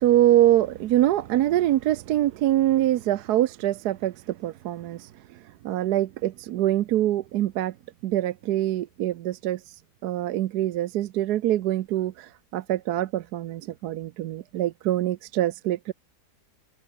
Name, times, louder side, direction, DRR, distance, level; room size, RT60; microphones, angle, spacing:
voice 1, 0.0-5.1 5.6-7.7 8.0-9.8 10.0-15.9, right 13 dB, 75° right, 1.2 m, -24 dB
omnidirectional pair, 1.7 m